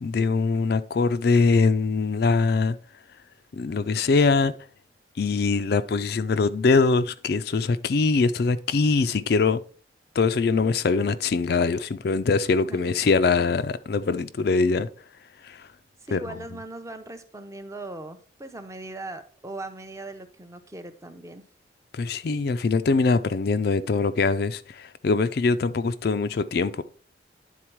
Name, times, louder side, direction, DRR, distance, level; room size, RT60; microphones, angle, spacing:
voice 1, 0.0-2.8 3.5-4.5 5.2-9.6 10.2-14.9 15.4-15.7 16.1-16.4 21.9-26.8, left 4 dB, 55° left, 0.4 m, -23 dB
voice 2, 12.7-13.1 16.0-21.5, right 2 dB, 15° right, 0.6 m, -39 dB
10.0 x 3.9 x 4.5 m
head